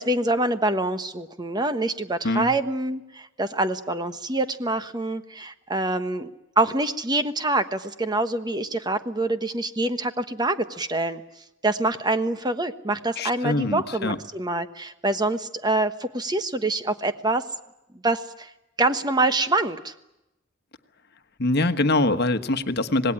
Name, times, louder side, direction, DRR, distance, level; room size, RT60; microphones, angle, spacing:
voice 1, 0.0-11.2 11.6-17.4 18.0-18.5 18.8-19.9, right 2 dB, 20° right, 9 dB, 1.3 m, -25 dB
voice 2, 13.2-14.2 21.4-23.1, left 2 dB, 55° left, 9 dB, 1.3 m, -23 dB
26.0 x 19.5 x 9.9 m, 0.92 s
head